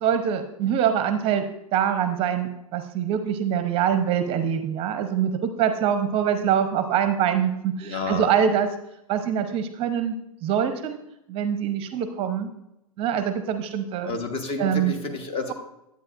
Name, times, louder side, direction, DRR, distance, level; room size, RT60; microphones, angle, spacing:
voice 1, 0.0-1.4 1.7-8.7 9.1-11.0 11.3-12.5 13.0-14.1 14.6-15.0, right 8 dB, 30° right, 9 dB, 0.7 m, -24 dB
voice 2, 7.8-8.3 14.0-15.5, left 3 dB, 30° left, 6 dB, 1.2 m, -30 dB
11.0 x 8.3 x 2.5 m, 0.85 s
hypercardioid pair, 105°, 18 cm